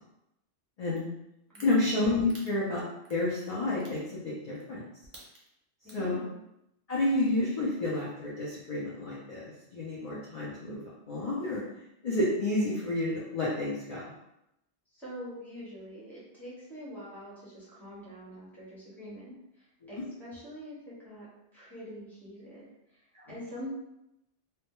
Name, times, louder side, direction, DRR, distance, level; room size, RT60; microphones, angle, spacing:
voice 1, 0.8-1.1 1.6-2.8 3.1-4.8 5.9-6.2 6.9-10.8 11.1-11.6 12.0-14.1 19.8-19.9 23.1-23.3, left 2 dB, 50° left, -6 dB, 0.5 m, -30 dB
sound 1, 1.0-1.1 1.5-1.7 2.3-2.5 3.0-3.2 3.8-4.0 4.5-4.7 5.0-5.5 5.9-6.1, right 2 dB, 50° right, 0.6 m, -50 dB
voice 2, 1.5-1.8 5.8-6.3 14.9-21.3 21.5-22.6 22.9-23.7, equal, ahead, -9 dB, 0.9 m, -45 dB
2.2 x 2.1 x 2.9 m, 0.85 s
omnidirectional pair, 1.2 m